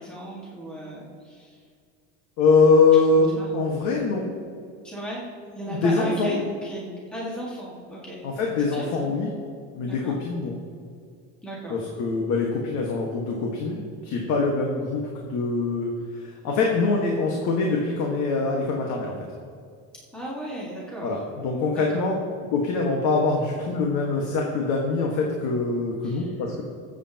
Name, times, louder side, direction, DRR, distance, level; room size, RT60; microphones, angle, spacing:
voice 1, 0.0-1.5 3.2-3.5 4.8-5.2 5.6-8.2 8.6-9.1 9.9-10.2 11.4-11.8 20.1-21.1 21.8-22.0 26.0-26.3, equal, 5° left, -6 dB, 1.9 m, -35 dB
voice 2, 2.4-3.3 3.5-4.4 5.7-6.4 8.2-9.3 9.7-10.6 11.7-15.9 16.2-19.2 21.0-22.1 22.5-26.6, left 4 dB, 60° left, -1 dB, 1.6 m, -23 dB
21.5 x 8.1 x 2.9 m, 2.3 s
cardioid pair, 160°, 33 cm